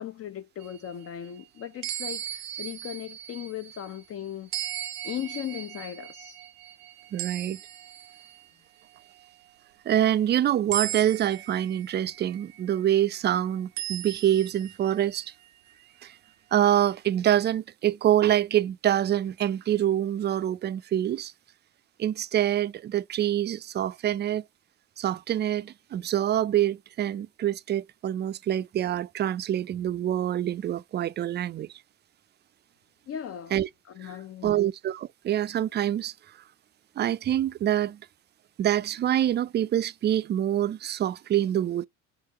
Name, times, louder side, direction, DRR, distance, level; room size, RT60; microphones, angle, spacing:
voice 1, 0.0-4.5 5.0-6.4 33.1-33.5 33.9-34.6, left 10 dB, 40° left, 0.5 m, -37 dB
sound 1, 0.6-4.0 4.5-8.5 8.9-9.3 10.7-12.8 13.8-15.7, right 13 dB, 80° right, 0.7 m, -38 dB
voice 2, 7.1-7.6 9.9-15.3 16.0-16.1 16.5-21.3 22.0-24.4 25.0-31.7 33.5-33.7 34.0-34.1 34.4-36.1 37.0-38.0 38.6-41.9, right 11 dB, 30° right, 0.4 m, -26 dB
4.9 x 3.4 x 2.9 m
hypercardioid pair, 60°, 37 cm